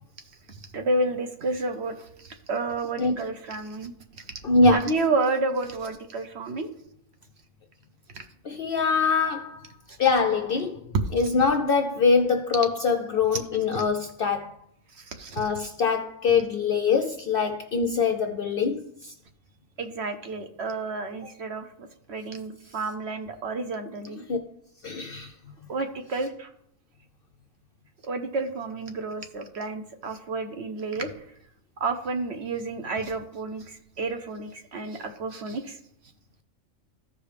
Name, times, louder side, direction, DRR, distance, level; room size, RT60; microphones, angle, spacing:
voice 1, 0.5-3.9 4.7-6.7 8.1-8.2 11.2-11.3 13.7-13.8 15.0-15.4 19.8-24.2 25.7-26.5 28.0-31.1 31.8-35.8, right 3 dB, 55° right, 1.0 m, -30 dB
voice 2, 4.4-4.9 8.4-9.6 10.0-10.8 11.1-14.5 15.4-19.1 24.3-24.4 24.8-25.3, left 4 dB, 60° left, 0.6 m, -23 dB
14.0 x 4.9 x 3.3 m
omnidirectional pair, 1.4 m